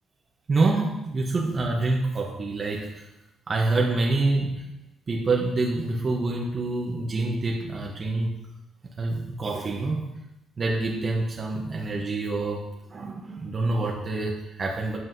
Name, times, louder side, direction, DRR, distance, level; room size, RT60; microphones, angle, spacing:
voice 1, 0.5-3.1 3.5-4.6 5.1-8.4 9.0-10.1 10.6-15.0, right 2 dB, 40° right, -1 dB, 0.9 m, -26 dB
7.8 x 5.5 x 2.7 m, 0.96 s
cardioid pair, 90°, 0 cm